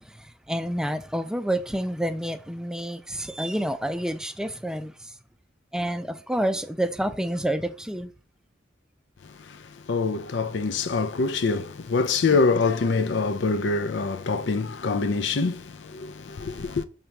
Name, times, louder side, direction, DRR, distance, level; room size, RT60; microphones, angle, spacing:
voice 1, 0.0-5.1 5.7-8.1 12.3-12.4, right 1 dB, 5° right, 0.5 m, -29 dB
voice 2, 9.2-16.8, left 4 dB, 70° left, 0.5 m, -25 dB
6.6 x 3.3 x 5.8 m
head